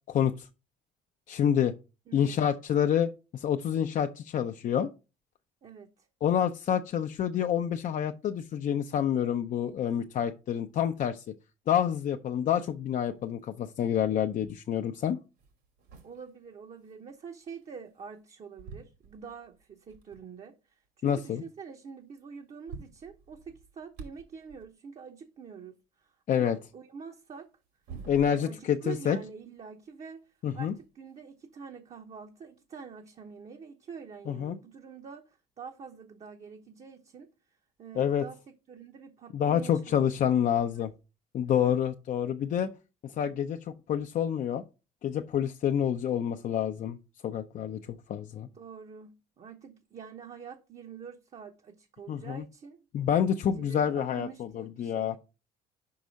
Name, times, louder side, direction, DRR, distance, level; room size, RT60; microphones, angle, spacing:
voice 1, 0.1-0.5 1.3-1.7 2.1-4.9 6.2-11.2 11.7-15.2 21.0-21.4 26.3-26.6 28.1-29.2 30.4-30.7 34.3-34.6 37.9-38.2 39.3-40.9 41.3-42.7 43.0-44.6 45.0-47.0 47.2-47.8 48.1-48.5 52.1-52.4 52.9-55.2, left 9 dB, 50° left, 0.5 m, -28 dB
voice 2, 2.1-2.5 5.6-5.9 16.0-20.6 21.0-27.5 28.2-30.2 30.5-37.3 37.8-38.4 38.7-40.4 40.7-40.9 41.4-41.7 48.4-52.8 53.1-55.2, right 6 dB, 40° right, 0.8 m, -46 dB
sound 1, 14.8-14.9 15.3-18.2 18.6-20.3 20.8-20.9 21.2-21.3 22.1-22.2 22.4-24.8 27.2-28.7 29.1-31.3 32.4-32.5 33.5-33.6, right 5 dB, 85° right, 2.8 m, -51 dB
5.3 x 4.7 x 5.1 m
cardioid pair, 110°, 17 cm